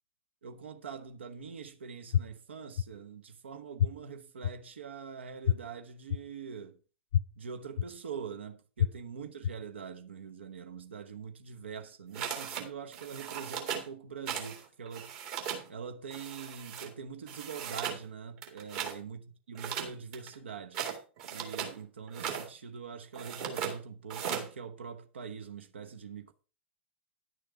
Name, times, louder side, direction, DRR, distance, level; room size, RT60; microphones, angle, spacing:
voice 1, 0.4-6.8 7.4-15.1 15.7-19.2 19.5-20.8 21.3-26.5, right 6 dB, 70° right, 1.0 m, -44 dB
sound 1, 2.1-2.2 2.8-2.9 3.8-3.9 4.4-4.5 5.5-5.6 6.1-6.2 7.1-7.2 7.8-7.9 8.8-8.9 9.4-9.5, left 10 dB, 60° left, 0.4 m, -25 dB
sound 2, 12.1-12.7 12.9-13.9 14.3-14.6 14.9-15.7 16.1-16.9 17.3-18.0 18.4-19.0 19.5-21.8 22.1-22.5 23.1-23.8 24.1-24.5, right 8 dB, 45° right, 2.3 m, -37 dB
11.0 x 6.4 x 4.5 m
figure-of-eight pair, 95°, 6 cm